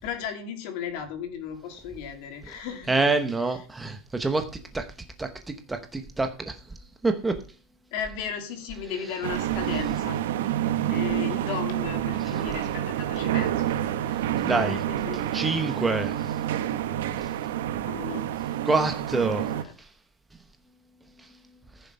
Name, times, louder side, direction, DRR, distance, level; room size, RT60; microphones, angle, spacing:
voice 1, 0.0-3.0 7.9-10.2 10.9-15.3 17.9-18.3 19.5-19.7, left 7 dB, 45° left, 6 dB, 2.8 m, -35 dB
voice 2, 2.9-4.5 4.7-4.8 5.2-5.3 5.7-6.5 7.0-7.4 14.4-14.8 15.3-16.3 18.7-19.6, right 3 dB, 5° right, 6 dB, 0.9 m, -26 dB
sound 1, 9.2-19.6, right 11 dB, 80° right, 1.3 m, -28 dB
14.5 x 7.0 x 5.3 m, 0.35 s
supercardioid pair, 180°, 0 cm